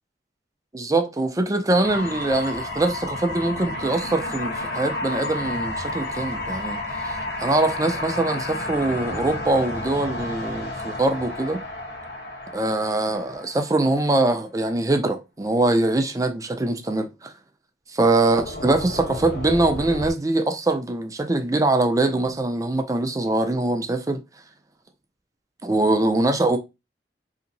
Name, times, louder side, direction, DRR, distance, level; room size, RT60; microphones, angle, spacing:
voice 1, 0.7-11.6 12.5-17.3 18.0-24.2 25.6-26.6, right 2 dB, 20° right, 0.5 m, -23 dB
sound 1, 1.8-14.1 18.2-20.1, left 1 dB, 65° left, 1.1 m, -31 dB
4.0 x 2.9 x 2.5 m
head